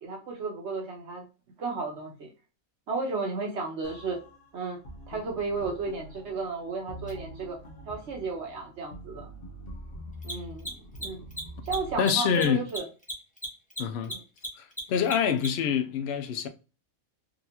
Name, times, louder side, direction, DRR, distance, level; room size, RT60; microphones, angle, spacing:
voice 1, 0.0-1.3 1.6-2.3 2.9-4.2 4.5-4.8 5.1-7.6 7.9-9.3 10.2-10.7 11.0-11.2 11.6-12.9 14.1-14.2, right 4 dB, 60° right, 0.9 m, -33 dB
sound 1, 3.8-12.0, right 1 dB, 45° left, 0.9 m, -45 dB
Mechanisms, 7.1-7.2 10.1-15.7, right 1 dB, 5° left, 0.7 m, -36 dB
voice 2, 12.0-12.7 13.8-14.1 14.6-16.5, left 7 dB, 65° left, 0.6 m, -26 dB
3.8 x 2.5 x 2.8 m
omnidirectional pair, 1.5 m